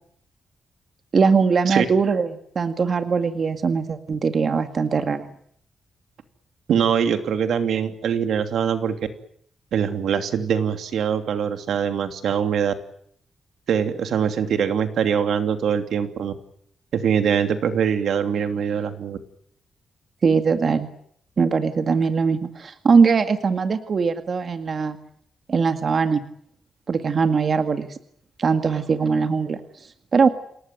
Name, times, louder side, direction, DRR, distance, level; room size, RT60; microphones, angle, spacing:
voice 1, 1.1-5.3 20.2-20.9 21.4-25.0 25.5-26.2 26.9-28.0 28.4-30.3, right 5 dB, 40° right, 8 dB, 2.0 m, -21 dB
voice 2, 6.7-9.0 9.7-12.7 13.7-16.3 16.9-19.2, right 7 dB, 80° right, 8 dB, 2.9 m, -23 dB
28.5 x 18.5 x 9.4 m, 0.67 s
wide cardioid pair, 145°, 0 cm